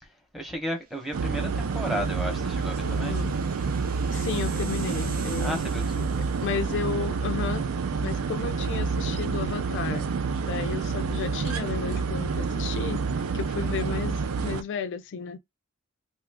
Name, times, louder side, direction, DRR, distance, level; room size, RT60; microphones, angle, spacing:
voice 1, 0.0-3.2 5.4-6.2, equal, ahead, 0.8 m, -34 dB
sound 1, 1.0-6.9, right 5 dB, 45° right, 0.6 m, -46 dB
sound 2, 1.1-14.6, right 5 dB, 85° right, 0.4 m, -28 dB
voice 2, 2.8-3.4 4.1-5.6 6.4-7.7 8.0-10.1 10.5-13.0 13.3-15.4, left 6 dB, 60° left, 0.3 m, -33 dB
2.7 x 2.4 x 3.3 m
head